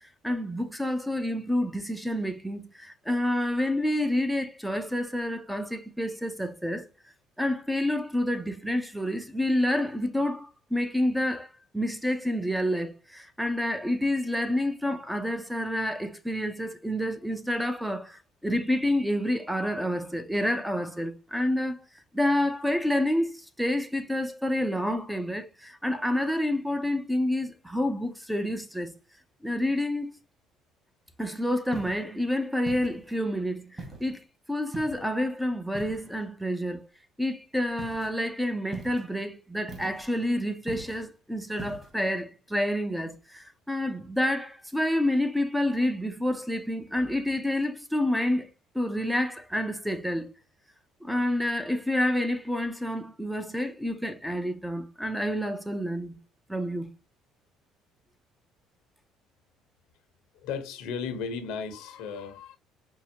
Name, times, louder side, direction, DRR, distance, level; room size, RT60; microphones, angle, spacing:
voice 1, 0.0-6.9 7.4-21.8 22.1-28.9 29.4-30.2 31.2-34.2 34.5-36.9 37.2-48.5 48.7-50.3 51.0-56.1 56.5-56.9, left 1 dB, ahead, 0.6 m, -28 dB
sound 1, 31.7-32.1 32.7-33.2 33.8-34.2 34.7-35.2 35.7-36.3 37.8-38.1 38.7-39.1 39.7-40.1 40.7-41.1 41.6-41.9, right 3 dB, 25° right, 1.6 m, -42 dB
voice 2, 60.3-62.6, left 6 dB, 80° left, 0.9 m, -35 dB
5.5 x 2.0 x 2.8 m
supercardioid pair, 95°, 0 cm